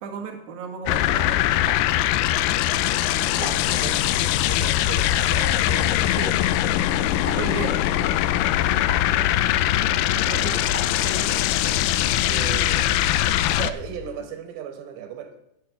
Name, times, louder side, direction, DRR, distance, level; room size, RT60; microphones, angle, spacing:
voice 1, 0.0-1.6 6.2-6.3 7.4-7.7 8.7-8.8 10.2-10.6 11.0-11.3, right 5 dB, 55° right, 2.6 m, -34 dB
sound 1, 0.9-13.7, left 13 dB, 85° left, 2.2 m, -22 dB
sound 2, 1.6-1.8 3.4-3.5 5.2-5.3 7.2-7.4 8.9-9.0 10.7-10.9, left 2 dB, 25° left, 1.9 m, -33 dB
sound 3, 2.7-14.3, left 4 dB, 60° left, 2.0 m, -44 dB
voice 2, 3.3-7.8 9.1-9.4 12.2-12.9 13.5-15.4, right 8 dB, 85° right, 3.2 m, -37 dB
9.4 x 6.8 x 8.0 m
omnidirectional pair, 4.9 m